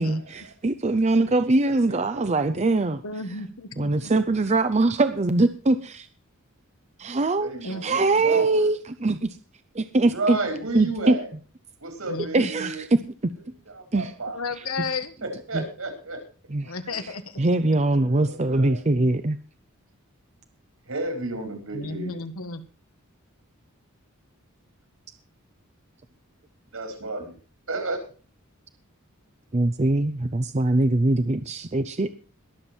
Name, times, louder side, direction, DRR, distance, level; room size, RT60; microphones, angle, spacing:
voice 1, 0.0-3.0 3.8-6.1 7.0-9.3 9.8-10.4 10.7-11.2 12.3-13.0 13.9-14.1 15.5-15.6 16.5-16.7 17.4-19.4 29.5-32.1, right 2 dB, 30° right, 10 dB, 0.6 m, -22 dB
voice 2, 1.7-2.5 7.4-8.7 10.1-11.3 11.8-12.8 13.7-14.4 15.5-16.2 17.9-18.8 20.9-22.2 26.7-27.3 27.7-28.0, right 2 dB, 75° right, 5 dB, 4.5 m, -32 dB
voice 3, 3.0-4.1 7.6-8.0 8.3-8.4 12.0-12.7 14.3-15.1 16.6-17.4 21.7-22.6, left 3 dB, 85° left, 10 dB, 1.6 m, -34 dB
22.0 x 7.4 x 4.4 m, 0.39 s
head